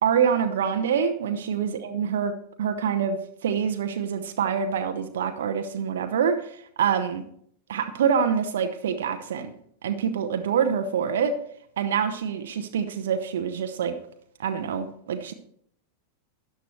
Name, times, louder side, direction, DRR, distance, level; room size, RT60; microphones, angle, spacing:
voice 1, 0.0-2.3 2.6-7.2 7.7-9.5 9.8-11.4 11.8-14.0 14.4-15.3, right 7 dB, 60° right, 0.8 m, -26 dB
13.0 x 10.5 x 3.1 m
figure-of-eight pair, 90°, 0 cm